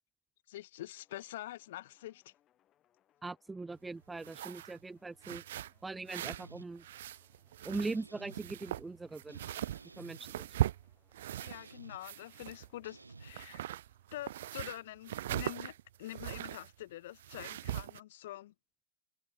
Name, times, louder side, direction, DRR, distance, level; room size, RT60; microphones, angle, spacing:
voice 1, 0.5-2.3 11.4-13.6 14.1-18.5, left 15 dB, 55° left, 2.6 m, -46 dB
sound 1, 0.9-14.7, left 12 dB, 30° left, 7.4 m, -75 dB
voice 2, 3.2-5.4 5.8-6.8 7.6-9.4 10.0-10.5, right 3 dB, 10° right, 0.4 m, -40 dB
sound 2, 4.1-4.8 5.2-6.5 6.8-8.0 8.3-11.7 12.0-12.9 13.2-16.7 17.2-18.0, right 13 dB, 60° right, 0.5 m, -39 dB
sound 3, 6.2-6.7 7.7-8.4 9.3-10.2 11.3-12.0 12.8-13.3, right 3 dB, 80° right, 3.4 m, -53 dB
figure-of-eight pair, 90°, 0 cm